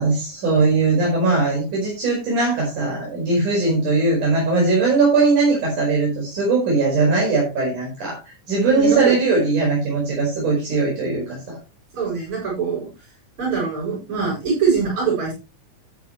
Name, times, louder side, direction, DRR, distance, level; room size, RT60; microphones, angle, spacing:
voice 1, 0.0-11.6, right 3 dB, 75° right, -3 dB, 6.4 m, -20 dB
voice 2, 8.6-9.1 11.9-12.9 13.4-15.3, right 5 dB, 40° right, -6 dB, 8.1 m, -23 dB
13.0 x 9.7 x 3.1 m, 0.28 s
omnidirectional pair, 3.5 m